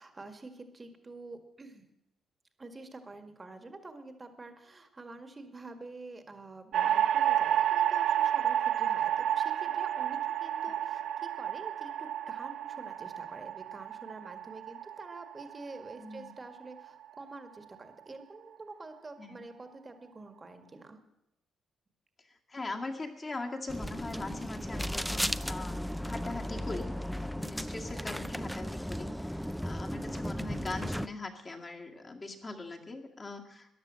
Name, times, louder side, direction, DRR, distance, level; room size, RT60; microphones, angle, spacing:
voice 1, 0.0-1.8 2.6-21.0, right 3 dB, 25° right, 8 dB, 1.8 m, -47 dB
sound 1, 6.7-17.0, right 10 dB, 70° right, 0.5 m, -30 dB
voice 2, 16.0-16.3 19.2-19.4 22.5-33.7, left 3 dB, 30° left, 2 dB, 2.1 m, -41 dB
sound 2, 23.7-31.1, equal, ahead, 0.5 m, -35 dB
13.5 x 10.5 x 7.5 m, 0.89 s
cardioid pair, 90°, 0 cm